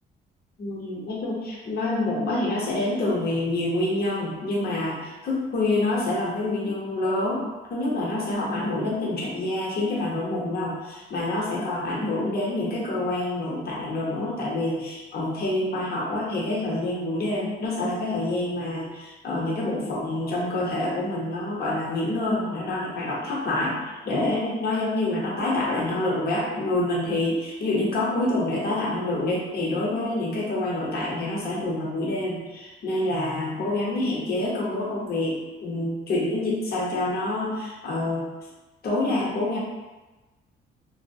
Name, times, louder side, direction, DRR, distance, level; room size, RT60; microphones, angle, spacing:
voice 1, 0.6-38.3 38.8-39.6, left 2 dB, 50° left, -4 dB, 0.7 m, -27 dB
2.6 x 2.1 x 2.3 m, 1.1 s
cardioid pair, 90°, 20 cm